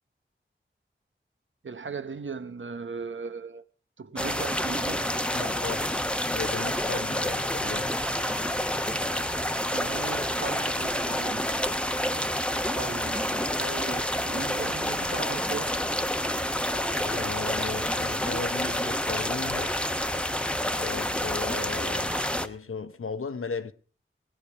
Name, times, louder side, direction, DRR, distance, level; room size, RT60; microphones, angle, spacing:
voice 1, 1.6-3.6 4.0-5.2 9.7-11.7 12.7-15.8, right 5 dB, 65° right, 0.9 m, -38 dB
sound 1, 4.2-22.5, equal, 5° left, 1.0 m, -28 dB
voice 2, 5.3-8.1 17.0-19.7 20.7-23.7, left 5 dB, 90° left, 0.9 m, -36 dB
18.5 x 10.5 x 4.8 m
wide cardioid pair, 65°, 21 cm